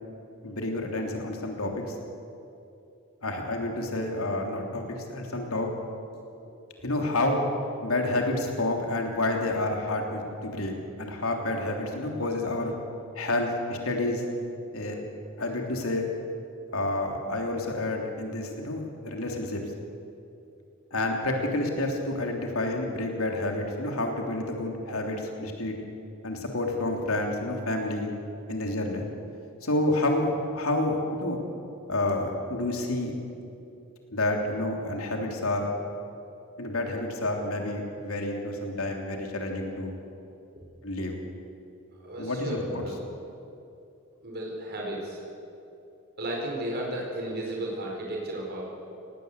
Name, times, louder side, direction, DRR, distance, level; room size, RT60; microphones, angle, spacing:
voice 1, 0.4-1.9 3.2-5.7 6.8-7.4 7.8-10.7 11.0-12.7 13.1-14.2 14.7-15.0 15.4-16.1 16.7-19.6 20.9-25.8 26.2-28.1 28.5-29.0 29.6-31.4 31.9-33.1 34.1-35.7 36.6-39.9 40.8-41.2 42.2-42.8, left 2 dB, 90° left, 2 dB, 3.2 m, -29 dB
voice 2, 42.0-43.0 44.2-45.2 46.2-48.6, right 1 dB, 50° right, -2 dB, 4.8 m, -34 dB
19.0 x 18.5 x 8.2 m, 2.7 s
head